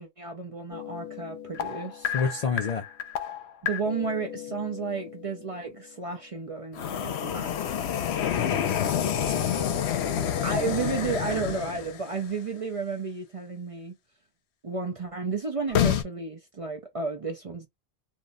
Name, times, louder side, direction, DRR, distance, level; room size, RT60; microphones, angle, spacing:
voice 1, 0.0-2.1 3.6-7.5 10.4-14.0 14.6-17.7, right 4 dB, 45° right, 0.5 m, -32 dB
sound 1, 0.7-5.4 6.7-12.2 15.7-16.0, left 9 dB, 80° left, 0.9 m, -29 dB
voice 2, 2.1-2.9 8.4-9.8, left 6 dB, 55° left, 0.4 m, -30 dB
2.5 x 2.1 x 3.6 m
omnidirectional pair, 1.1 m